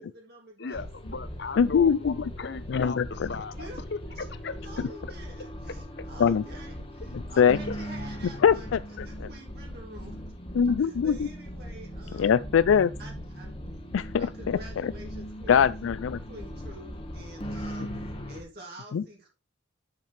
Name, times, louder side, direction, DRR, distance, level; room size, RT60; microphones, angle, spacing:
voice 1, 0.0-0.9 3.5-3.8 4.2-10.2 10.8-12.4 13.0-15.7 16.3-19.3, right 1 dB, 55° right, 3.0 m, -48 dB
voice 2, 0.6-4.0 4.4-4.5 6.0-6.1 7.4-7.8, left 4 dB, 60° left, 0.8 m, -37 dB
sound 1, 0.7-18.4, equal, 30° left, 1.6 m, -39 dB
voice 3, 1.6-2.1 2.7-3.3 6.2-6.4 7.4-7.6 8.4-8.8 9.2-9.3 10.6-11.1 12.2-12.9 13.9-14.9 15.5-16.2 18.9-19.0, left 7 dB, 90° left, 0.4 m, -22 dB
8.2 x 7.5 x 3.3 m
head